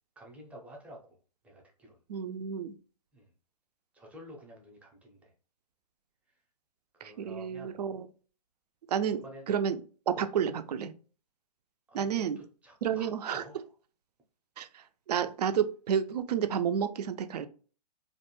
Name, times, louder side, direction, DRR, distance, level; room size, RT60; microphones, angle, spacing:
voice 1, 0.2-1.2 1.4-2.0 3.1-3.3 3.9-5.3 6.3-6.4 6.9-7.8 9.2-9.5 11.9-13.6, equal, 5° right, -1 dB, 0.5 m, -50 dB
voice 2, 2.1-2.8 7.0-8.1 8.9-9.8 10.1-10.9 11.9-12.4 12.8-13.4 14.6-17.5, right 8 dB, 70° right, 10 dB, 0.4 m, -31 dB
2.5 x 2.1 x 2.9 m, 0.39 s
hypercardioid pair, 130°, 21 cm